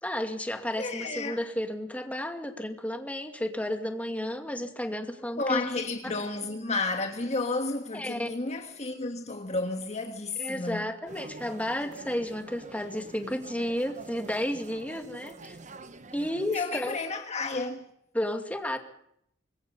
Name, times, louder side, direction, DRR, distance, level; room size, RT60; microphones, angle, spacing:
voice 1, 0.0-5.7 7.9-8.3 10.4-15.6 16.1-17.0 18.1-18.8, equal, 10° left, 2.3 m, -32 dB
voice 2, 0.8-1.4 5.4-10.9 16.5-17.8, left 3 dB, 35° left, 1.5 m, -32 dB
sound 1, 11.1-16.6, right 3 dB, 40° right, 1.0 m, -46 dB
26.0 x 21.5 x 5.5 m
head